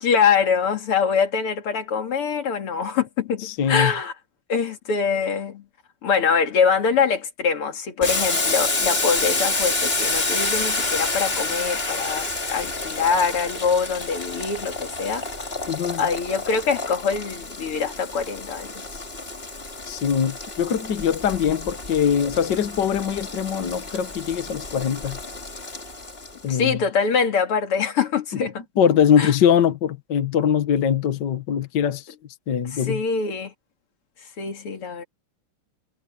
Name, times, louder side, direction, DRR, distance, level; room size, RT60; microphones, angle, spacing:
voice 1, 0.0-4.1 4.5-5.6 6.0-15.2 16.0-18.8 26.5-28.6 29.2-29.3 32.7-33.5 34.4-35.0, left 6 dB, 80° left, 3.1 m, -24 dB
voice 2, 3.4-3.9 15.7-16.0 19.9-25.2 26.4-26.8 28.8-32.0 32.5-33.0, left 8 dB, 55° left, 1.7 m, -22 dB
Boiling, 8.0-26.4, left 3 dB, 25° left, 2.8 m, -29 dB
omnidirectional pair, 2.4 m